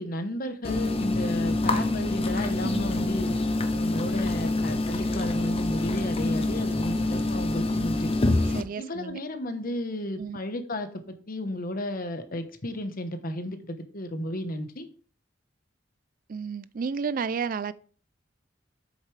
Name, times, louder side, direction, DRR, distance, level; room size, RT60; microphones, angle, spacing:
voice 1, 0.0-3.3 3.8-8.1 8.8-14.9, left 1 dB, 50° left, 1.0 m, -33 dB
sound 1, 0.6-8.6, left 2 dB, 30° left, 0.8 m, -26 dB
voice 2, 8.5-9.2 10.2-10.4 16.3-17.7, right 5 dB, 45° right, 0.4 m, -32 dB
8.1 x 6.6 x 3.3 m
head